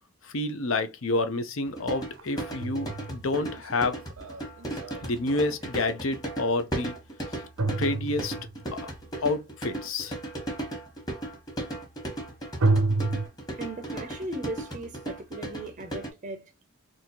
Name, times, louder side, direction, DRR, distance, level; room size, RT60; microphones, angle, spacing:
voice 1, 0.2-4.0 5.0-6.9 7.8-8.3 8.7-8.9 9.2-10.2, left 2 dB, 70° left, 0.7 m, -29 dB
sound 1, 1.2-1.3 2.2-5.8 7.6-8.7 12.6-13.3, right 3 dB, 85° right, 0.7 m, -29 dB
sound 2, 1.8-16.1, right 1 dB, 20° left, 1.2 m, -36 dB
voice 2, 13.6-16.5, right 2 dB, 35° right, 0.6 m, -37 dB
3.7 x 2.8 x 2.9 m
head